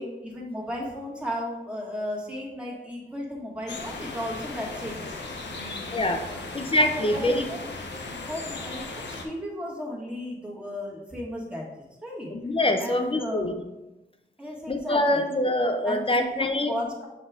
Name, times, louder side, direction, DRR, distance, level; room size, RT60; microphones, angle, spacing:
voice 1, 0.0-5.1 5.5-6.5 6.8-7.7 8.1-11.7 12.0-12.3 12.8-13.6 14.4-15.2 15.8-17.1, left 1 dB, 5° right, -3 dB, 1.6 m, -35 dB
sound 1, 3.7-9.3, left 3 dB, 80° left, 0.8 m, -37 dB
voice 2, 5.9-6.2 6.5-7.4 12.3-13.5 14.7-16.7, left 1 dB, 30° left, 5 dB, 0.6 m, -24 dB
6.6 x 4.3 x 3.6 m, 0.99 s
cardioid pair, 80°, 18 cm